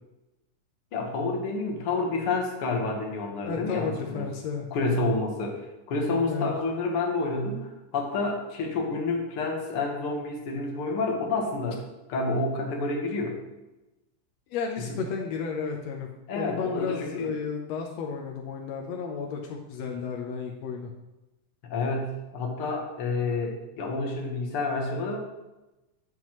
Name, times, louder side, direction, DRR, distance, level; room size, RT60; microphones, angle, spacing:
voice 1, 0.9-4.3 4.7-5.6 5.9-11.8 12.1-13.4 14.9-15.0 16.3-17.3 21.6-25.2, left 3 dB, 55° left, 0 dB, 1.7 m, -29 dB
voice 2, 3.4-4.7 6.3-6.5 14.5-20.9, left 5 dB, 85° left, 1 dB, 1.5 m, -33 dB
9.6 x 7.3 x 3.1 m, 1.0 s
omnidirectional pair, 3.9 m